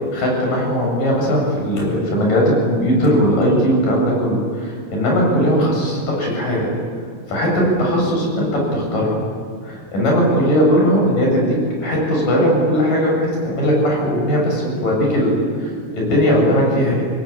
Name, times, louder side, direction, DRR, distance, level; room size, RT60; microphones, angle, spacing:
voice 1, 0.1-6.7 7.3-9.3 9.6-17.0, equal, 80° left, -1 dB, 9.4 m, -18 dB
29.5 x 21.5 x 8.8 m, 2.2 s
omnidirectional pair, 3.8 m